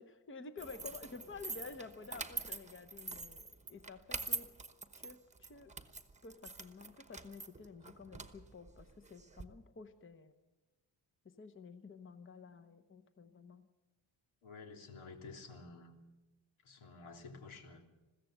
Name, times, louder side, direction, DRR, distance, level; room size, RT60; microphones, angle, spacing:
voice 1, 0.0-4.5 5.0-5.7 6.2-10.3 11.2-13.7, left 4 dB, 25° left, 10 dB, 0.9 m, -51 dB
sound 1, 0.6-9.4, right 3 dB, 15° right, 1.1 m, -45 dB
voice 2, 14.4-16.0 16.6-17.8, left 4 dB, 85° left, 4 dB, 3.2 m, -51 dB
21.5 x 15.5 x 7.9 m, 1.1 s
wide cardioid pair, 165°, 48 cm